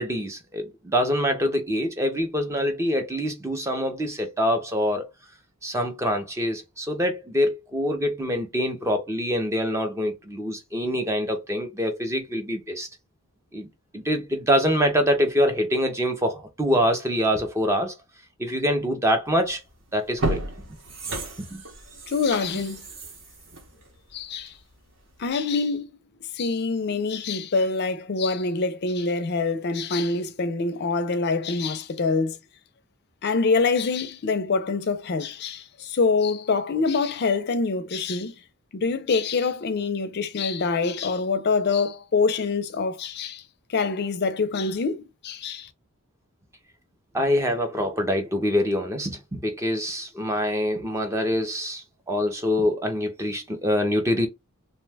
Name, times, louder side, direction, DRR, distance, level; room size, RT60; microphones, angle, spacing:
voice 1, 0.0-5.1 5.6-12.9 13.5-13.7 13.9-17.9 18.4-19.6 19.9-20.4 21.4-21.6 47.1-54.3, equal, 15° right, 0.5 m, -25 dB
sound 1, 19.4-19.6 20.0-24.7 25.1-25.2, right 2 dB, 55° right, 0.8 m, -33 dB
voice 2, 22.1-22.8 24.1-24.5 25.2-26.0 26.3-32.4 33.2-38.3 38.7-43.4 43.7-45.7, left 4 dB, 45° left, 0.4 m, -25 dB
2.7 x 2.1 x 3.3 m
head